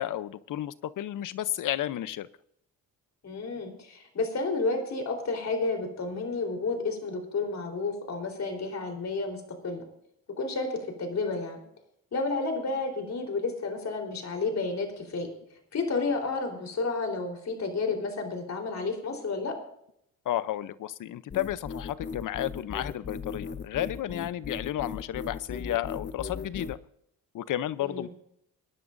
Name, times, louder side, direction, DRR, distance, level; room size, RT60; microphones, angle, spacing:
voice 1, 0.0-2.3 20.3-26.8 27.3-28.1, left 12 dB, 70° left, 16 dB, 0.8 m, -32 dB
voice 2, 3.2-9.9 10.4-11.6 12.1-15.3 15.7-19.5 27.8-28.1, left 3 dB, 55° left, 3 dB, 4.0 m, -31 dB
sound 1, 21.3-26.8, left 5 dB, 35° left, 0.8 m, -37 dB
24.0 x 11.0 x 2.6 m, 0.73 s
cardioid pair, 70°, 33 cm